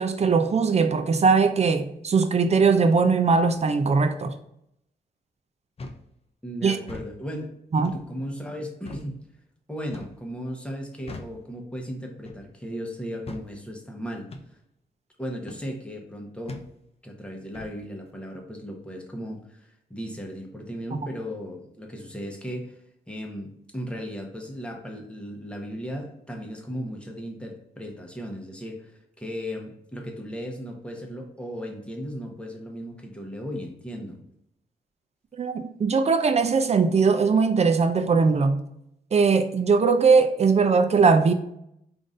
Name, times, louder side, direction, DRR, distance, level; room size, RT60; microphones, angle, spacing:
voice 1, 0.0-4.3 6.6-6.8 7.7-8.0 20.9-21.1 35.4-38.6 39.1-41.3, right 5 dB, 35° right, 0.5 m, -20 dB
sound 1, 5.8-6.1 6.8-7.1 7.8-8.1 8.8-9.1 9.9-10.2 11.1-11.4 12.2-12.5 13.3-13.5 14.3-14.5 15.5-15.7 16.5-16.7 17.5-17.8, left 2 dB, 35° left, 0.5 m, -39 dB
voice 2, 6.4-9.1 9.7-14.3 15.2-16.6 17.0-22.8 23.1-34.2, equal, 5° left, 0.9 m, -36 dB
3.8 x 2.6 x 3.7 m
cardioid pair, 85°, 18 cm